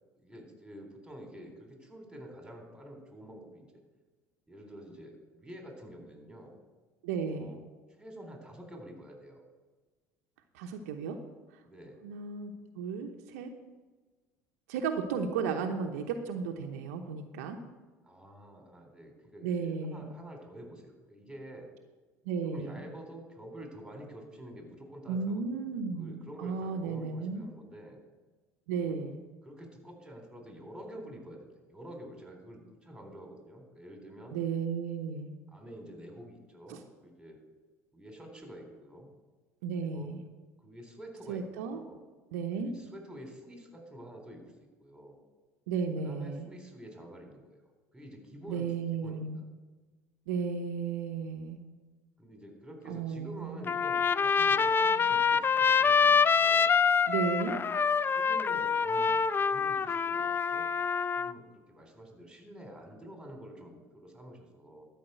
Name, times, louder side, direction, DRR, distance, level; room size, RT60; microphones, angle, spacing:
voice 1, 0.1-3.7 4.5-6.6 7.3-7.6 8.0-9.4 11.7-12.0 18.0-21.7 22.4-25.6 26.0-28.0 28.7-29.0 29.4-34.4 35.5-37.4 37.9-39.1 39.8-40.2 40.6-42.0 42.6-44.5 44.8-45.2 46.0-49.4 52.2-56.7 57.4-57.6 58.1-60.7 61.1-64.9, equal, 5° right, 2 dB, 3.7 m, -48 dB
voice 2, 7.0-7.5 10.5-11.2 12.0-13.5 14.7-17.6 19.4-20.1 22.2-22.8 25.1-27.4 28.7-29.2 34.3-35.3 36.7-36.8 39.6-40.2 41.3-41.8 42.3-42.7 45.7-46.5 48.5-49.4 50.3-51.6 52.9-53.6 57.1-57.6, right 5 dB, 75° right, 4 dB, 0.9 m, -34 dB
Trumpet, 53.7-61.3, left 6 dB, 25° left, 0.4 m, -26 dB
12.5 x 5.3 x 7.8 m, 1.3 s
hypercardioid pair, 65°, 8 cm